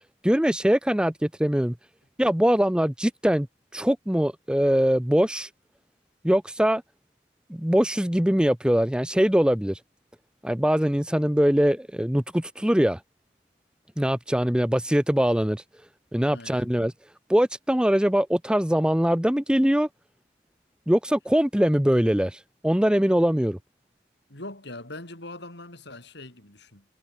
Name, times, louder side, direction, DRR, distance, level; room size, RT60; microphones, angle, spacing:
voice 1, 0.2-1.7 2.2-3.5 3.7-5.5 6.2-6.8 7.5-9.8 10.4-13.0 14.0-15.6 16.1-16.9 17.3-19.9 20.9-23.6, equal, 5° right, 0.8 m, -22 dB
voice 2, 16.3-16.7 24.3-26.8, left 2 dB, 65° left, 6.6 m, -41 dB
head